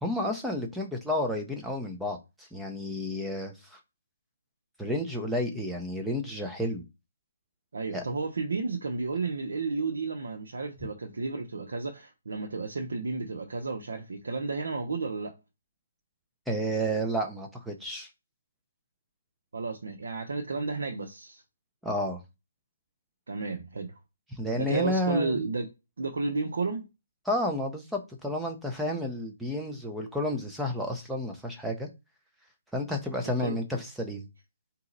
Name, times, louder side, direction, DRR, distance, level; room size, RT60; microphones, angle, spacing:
voice 1, 0.0-2.2 2.5-3.8 4.8-6.8 7.9-8.0 16.5-18.1 21.8-22.2 24.3-25.4 27.3-31.9 32.7-34.3, left 1 dB, ahead, 0.6 m, -31 dB
voice 2, 7.7-15.3 19.5-21.4 23.3-23.9 24.6-25.7 26.0-26.9 33.4-33.6, right 3 dB, 75° right, 0.9 m, -32 dB
4.0 x 2.9 x 3.9 m
hypercardioid pair, 160°, 0 cm